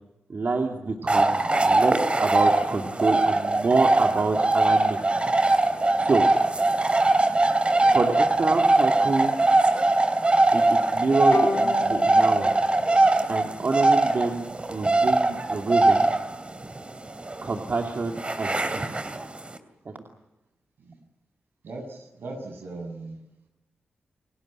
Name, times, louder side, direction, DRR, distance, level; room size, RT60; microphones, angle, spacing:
voice 1, 0.3-6.2 7.9-9.3 10.5-12.5 13.3-16.1 17.4-18.9 19.9-20.0, right 3 dB, 55° right, 2 dB, 2.6 m, -27 dB
sound 1, 1.1-19.6, right 2 dB, 30° right, 2.9 m, -22 dB
Bowed string instrument, 11.3-14.6, left 3 dB, 65° left, 7.4 m, -34 dB
voice 2, 21.6-23.2, right 2 dB, 75° right, 4 dB, 7.1 m, -38 dB
29.5 x 18.5 x 8.8 m, 0.94 s
cardioid pair, 55°, 4 cm